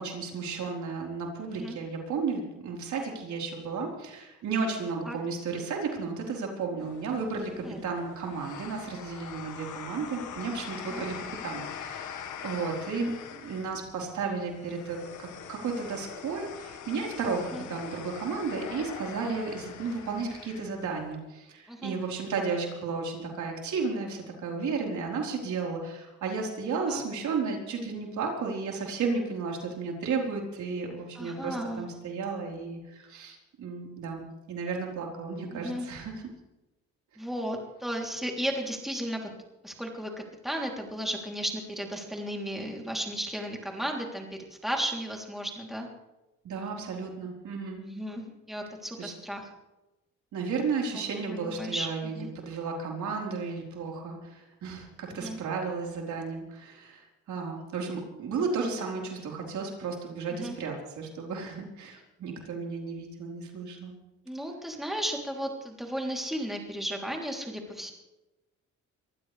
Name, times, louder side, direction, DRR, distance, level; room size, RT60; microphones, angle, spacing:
voice 1, 0.0-11.1 11.4-17.4 17.7-36.3 46.4-47.8 49.0-49.1 50.3-63.9, right 4 dB, 70° right, 0 dB, 4.4 m, -33 dB
sound 1, 6.8-21.1, left 8 dB, 80° left, 1.7 m, -43 dB
voice 2, 31.1-31.8 35.5-35.9 37.2-39.3 39.6-40.1 40.4-44.3 44.6-45.9 47.8-49.5 51.4-52.3 55.2-55.4 60.3-60.6 64.3-67.9, equal, ahead, 0 dB, 3.3 m, -34 dB
23.5 x 15.0 x 3.4 m, 1.0 s
cardioid pair, 90°, 30 cm